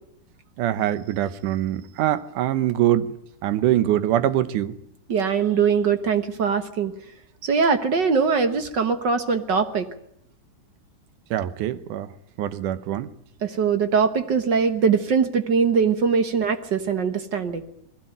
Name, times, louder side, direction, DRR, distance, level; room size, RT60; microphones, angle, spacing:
voice 1, 0.6-3.1 3.4-4.7 11.3-12.1 12.4-13.1, right 12 dB, 90° right, 2.5 m, -23 dB
voice 2, 5.1-6.9 7.4-9.9 13.4-17.6, right 5 dB, 50° right, 1.4 m, -22 dB
21.0 x 16.5 x 9.1 m
omnidirectional pair, 3.5 m